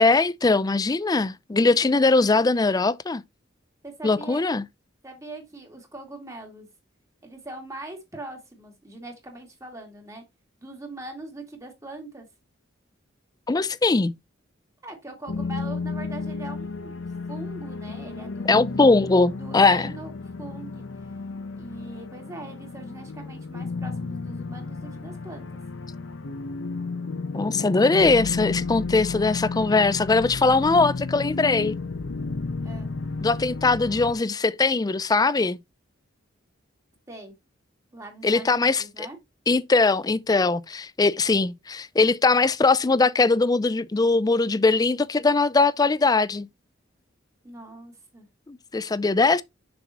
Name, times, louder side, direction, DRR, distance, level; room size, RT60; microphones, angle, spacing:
voice 1, 0.0-3.2 4.0-4.6 13.5-14.1 18.5-19.9 27.3-31.8 33.2-35.6 38.2-38.8 39.5-46.5 48.5-49.4, left 3 dB, 20° left, 0.4 m, -21 dB
voice 2, 3.8-4.4 5.0-6.7 7.2-10.2 10.6-12.3 14.8-18.9 19.4-20.1 20.4-20.9 21.6-25.5 32.6-32.9 37.1-37.3 37.9-39.2 47.4-48.3, right 2 dB, 15° right, 2.4 m, -41 dB
sound 1, 15.3-34.1, left 3 dB, 75° left, 0.8 m, -33 dB
7.0 x 6.1 x 2.9 m
head